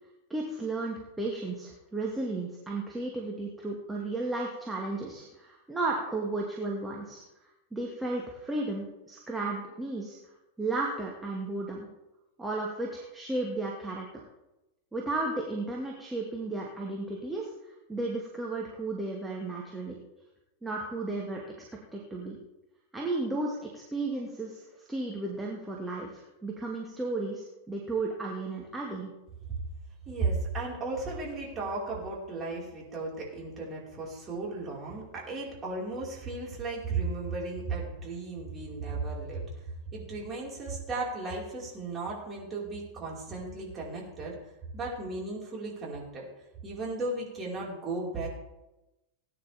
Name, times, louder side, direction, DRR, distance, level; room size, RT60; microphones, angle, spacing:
voice 1, 0.3-7.2 7.7-10.2 10.6-11.9 12.4-14.1 14.9-20.0 20.6-21.4 21.9-22.4 22.9-24.6 24.9-29.1, right 2 dB, 10° right, -2 dB, 2.1 m, -34 dB
voice 2, 30.1-39.4 39.9-44.4 44.7-46.2 46.6-48.3, right 3 dB, 25° right, -4 dB, 5.1 m, -35 dB
19.0 x 9.8 x 3.6 m, 0.98 s
figure-of-eight pair, 90°, 0 cm